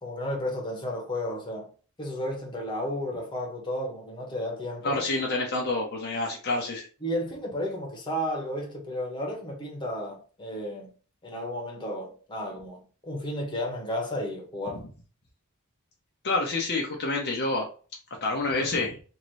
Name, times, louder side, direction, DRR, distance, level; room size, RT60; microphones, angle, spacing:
voice 1, 0.0-1.7 2.0-5.0 7.0-10.9 11.2-14.9, left 1 dB, 20° left, 1.2 m, -33 dB
voice 2, 4.8-6.9 16.2-17.7 18.2-18.9, left 2 dB, 50° left, 0.8 m, -28 dB
3.1 x 2.8 x 4.0 m
head